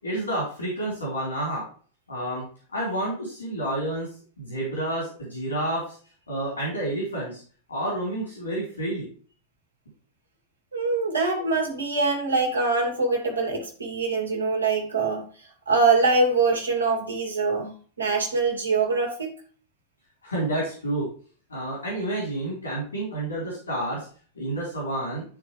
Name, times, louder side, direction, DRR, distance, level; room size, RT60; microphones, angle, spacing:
voice 1, 0.0-1.6 2.1-2.4 2.7-4.1 4.4-6.0 6.3-7.4 7.7-9.1 13.1-13.2 20.2-21.1 21.5-24.1 24.4-25.2, right 1 dB, 80° left, 3.9 m, -29 dB
voice 2, 10.7-15.3 15.7-19.4, right 3 dB, 75° right, 2.5 m, -24 dB
12.5 x 4.7 x 3.3 m
figure-of-eight pair, 90°, 0 cm